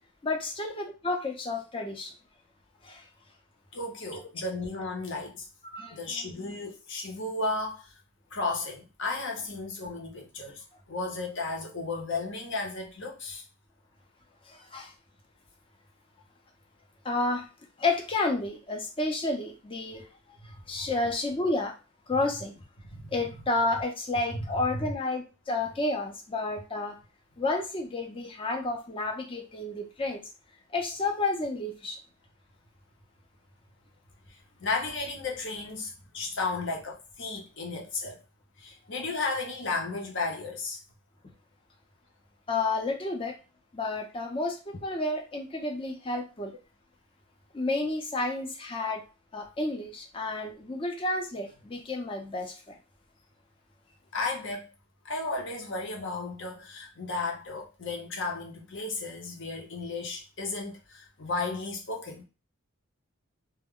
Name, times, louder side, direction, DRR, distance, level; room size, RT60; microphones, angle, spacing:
voice 1, 0.2-2.1 2.8-3.0 5.7-6.5 14.5-14.9 17.0-17.4 17.8-20.1 20.4-21.7 22.1-22.6 23.1-27.0 27.4-30.2 30.7-32.0 42.5-43.3 43.7-46.6 47.5-49.0 49.3-52.8, left 2 dB, 25° left, 0.5 m, -31 dB
voice 2, 3.7-5.5 5.9-7.9 8.3-13.4 22.9-23.2 24.3-24.4 34.3-38.2 38.6-40.8 54.1-54.7 55.0-62.2, left 3 dB, 55° left, 0.8 m, -34 dB
2.2 x 2.1 x 3.6 m
head